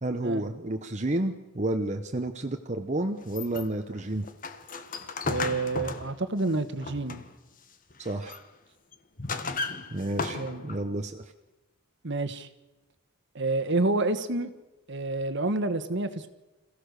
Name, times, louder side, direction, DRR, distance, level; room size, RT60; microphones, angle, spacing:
voice 1, 0.0-4.3 8.0-8.4 9.9-11.2, right 1 dB, 35° right, 4 dB, 0.9 m, -31 dB
sound 1, 3.2-7.5 7.9-8.5 8.9-10.9, left 3 dB, 40° left, 1.3 m, -35 dB
voice 2, 5.3-7.2 10.3-10.6 12.0-12.5 13.3-14.5 14.9-16.3, right 2 dB, 55° right, 10 dB, 1.4 m, -28 dB
26.5 x 15.5 x 6.7 m, 1.1 s
head